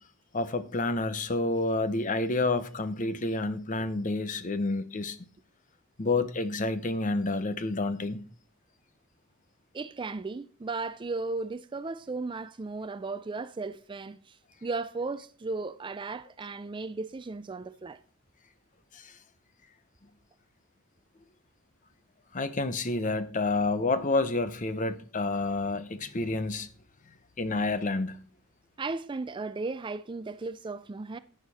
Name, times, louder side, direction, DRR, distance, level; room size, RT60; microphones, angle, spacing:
voice 1, 0.3-5.2 6.0-8.3 18.9-19.1 22.3-26.7 27.4-28.2, left 2 dB, 40° left, 0.8 m, -29 dB
voice 2, 9.7-18.0 28.8-31.2, right 3 dB, 25° right, 0.4 m, -35 dB
11.0 x 9.0 x 4.2 m
head